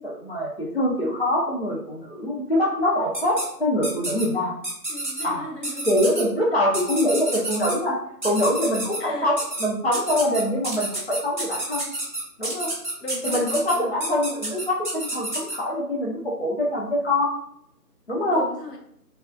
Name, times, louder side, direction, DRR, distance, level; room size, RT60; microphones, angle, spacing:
voice 1, 0.0-4.6 5.2-5.4 5.9-8.0 8.2-9.3 9.6-11.9 12.4-12.7 13.2-17.3 18.1-18.4, left 1 dB, 45° left, -4 dB, 0.4 m, -24 dB
sound 1, 3.1-3.4 3.8-4.2 4.6-5.2 5.6-6.2 6.7-7.7 8.2-9.0 9.4-9.6 9.9-15.6, right 1 dB, 30° right, 0.6 m, -29 dB
voice 2, 4.9-5.9 9.0-9.4 13.0-14.2 18.3-18.8, left 1 dB, 80° left, 1 dB, 1.0 m, -36 dB
3.3 x 2.2 x 2.5 m, 0.70 s
figure-of-eight pair, 155°, 48 cm